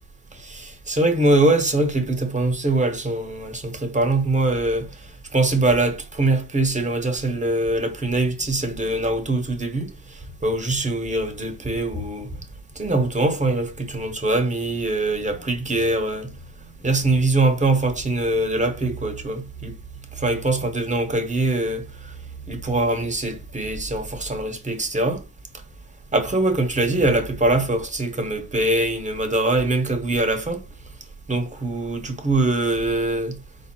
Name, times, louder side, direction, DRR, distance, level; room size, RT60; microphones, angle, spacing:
voice 1, 0.4-4.9 5.3-12.3 12.8-16.3 16.6-19.8 20.1-22.1 22.5-25.2 26.1-30.6 31.3-33.4, right 2 dB, 15° right, 0.9 m, -23 dB
4.9 x 2.0 x 4.3 m
cardioid pair, 120°, 49 cm